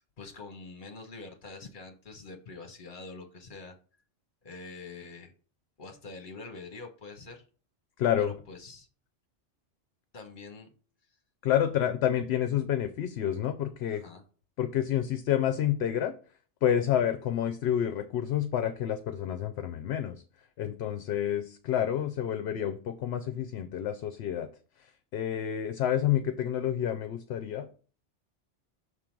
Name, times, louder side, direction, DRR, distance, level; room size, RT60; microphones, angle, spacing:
voice 1, 0.0-3.7 4.4-5.3 5.8-7.4 8.2-8.9 10.1-10.7 13.9-14.2, left 3 dB, 45° left, 5 dB, 1.2 m, -45 dB
voice 2, 8.0-8.3 11.4-14.0 14.6-16.1 16.6-20.2 20.6-24.5 25.1-27.7, left 10 dB, 70° left, 9 dB, 0.8 m, -29 dB
6.3 x 3.7 x 4.5 m, 0.40 s
omnidirectional pair, 1.2 m